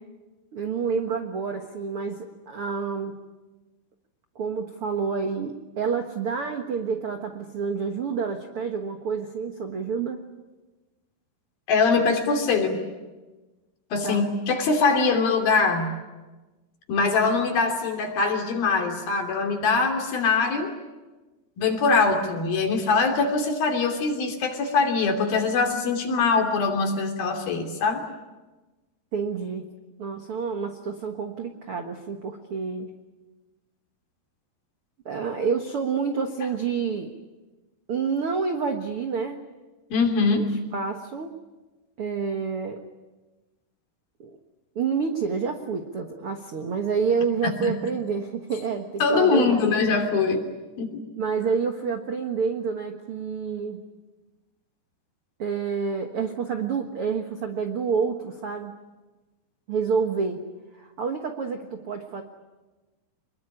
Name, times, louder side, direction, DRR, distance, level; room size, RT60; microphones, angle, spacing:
voice 1, 0.5-3.2 4.3-10.2 14.0-14.3 29.1-29.7 30.0-32.9 35.0-37.1 37.9-39.4 40.3-41.3 42.0-42.8 44.2-44.4 44.7-49.7 51.1-53.8 55.4-58.7 59.7-60.5 60.7-62.2, right 5 dB, 65° right, 5 dB, 1.3 m, -28 dB
voice 2, 11.7-12.8 13.9-15.9 16.9-20.7 21.6-28.0 39.9-40.4 47.6-47.7 49.0-50.4 50.8-51.0, left 4 dB, 60° left, 4 dB, 4.6 m, -23 dB
26.0 x 22.0 x 9.9 m, 1.2 s
omnidirectional pair, 4.8 m